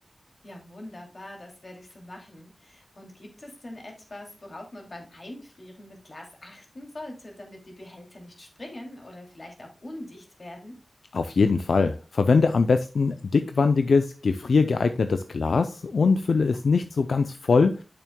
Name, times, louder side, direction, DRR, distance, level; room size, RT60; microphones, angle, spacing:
voice 1, 0.4-10.8, left 1 dB, 50° left, 1 dB, 2.6 m, -43 dB
voice 2, 11.1-17.8, left 4 dB, 90° left, 8 dB, 0.4 m, -22 dB
8.7 x 7.0 x 2.2 m, 0.32 s
wide cardioid pair, 60°, 0 cm